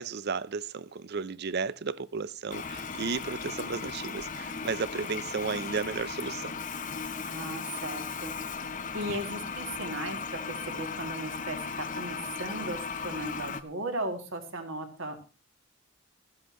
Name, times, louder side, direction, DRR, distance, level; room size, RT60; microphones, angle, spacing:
voice 1, 0.0-6.6, right 5 dB, 50° right, 0.5 m, -34 dB
Toilet flush, 2.5-13.6, left 5 dB, 40° left, 0.8 m, -37 dB
voice 2, 7.2-8.3 8.9-10.2 10.5-15.2, right 1 dB, 65° right, 2.6 m, -37 dB
16.0 x 13.5 x 3.1 m
head